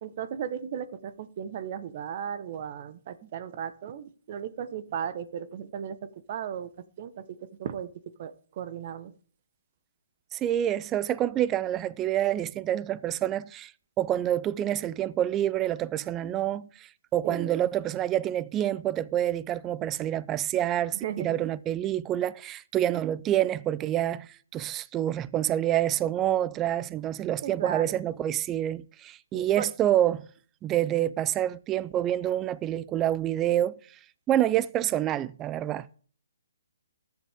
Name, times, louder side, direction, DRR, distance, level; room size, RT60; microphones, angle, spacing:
voice 1, 0.0-6.0 6.3-6.7 7.0-7.2 7.6-7.9 8.2-9.1 17.2-17.5 21.0-21.4 27.4-28.0 29.3-29.7, right 8 dB, 40° right, 1.3 m, -36 dB
voice 2, 10.3-13.7 14.0-30.3 30.6-33.8 34.3-35.9, right 12 dB, 20° right, 0.5 m, -27 dB
14.5 x 11.0 x 3.7 m
hypercardioid pair, 145°, 0 cm